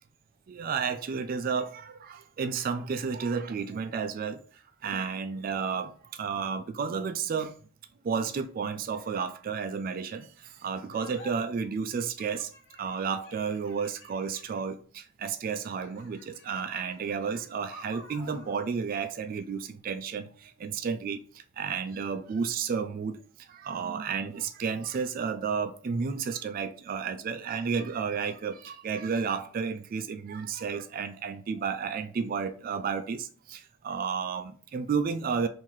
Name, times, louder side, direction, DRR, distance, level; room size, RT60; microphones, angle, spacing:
voice 1, 0.5-4.4 4.8-7.5 8.0-10.3 10.6-12.5 12.8-21.2 21.6-23.1 23.5-35.5, right 6 dB, 45° right, 0.3 m, -32 dB
sound 1, 10.9-11.3 11.9-14.7 15.4-18.6, left 1 dB, 85° left, 1.1 m, -51 dB
3.0 x 2.7 x 3.7 m
head